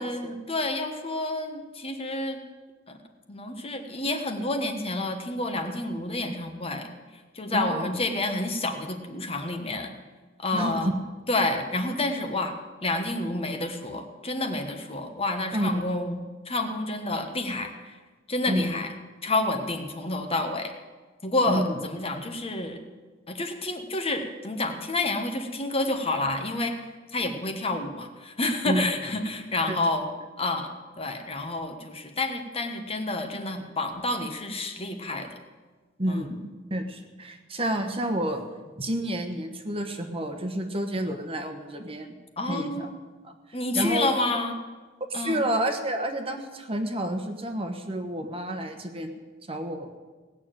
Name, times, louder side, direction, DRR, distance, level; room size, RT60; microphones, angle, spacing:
voice 1, 0.0-2.4 2.9-3.0 3.3-6.9 7.3-9.9 10.4-10.9 11.3-16.2 16.4-18.0 18.3-18.9 19.2-20.7 21.2-22.8 23.3-26.8 27.1-30.1 30.4-35.3 36.1-36.4 42.4-43.0 43.5-44.5 45.1-45.4, left 2 dB, 30° left, 5 dB, 1.3 m, -29 dB
voice 2, 7.5-8.0 10.5-10.9 15.5-15.8 18.5-18.8 21.5-21.8 28.6-28.9 29.7-29.8 36.0-38.4 38.8-42.2 42.4-42.9 43.2-43.3 43.7-44.1 45.1-49.2 49.5-50.0, right 1 dB, 30° right, 5 dB, 1.2 m, -29 dB
18.0 x 6.9 x 9.0 m, 1.3 s
head